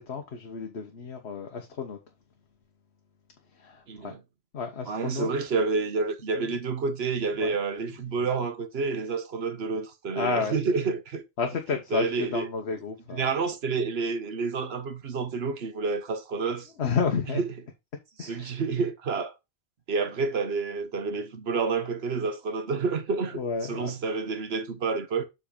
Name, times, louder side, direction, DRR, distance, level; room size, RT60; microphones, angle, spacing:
voice 1, 0.0-2.0 3.5-4.1 4.5-5.3 6.4-6.5 7.4-7.6 10.1-10.5 11.4-13.2 16.8-17.4 18.2-18.6 23.3-23.9, left 5 dB, 80° left, 1.3 m, -31 dB
voice 2, 3.9-4.2 4.9-11.2 11.9-12.5 13.1-16.7 17.3-17.5 18.2-19.3 19.9-25.3, right 4 dB, 70° right, 1.3 m, -29 dB
7.3 x 4.2 x 5.0 m
omnidirectional pair, 1.1 m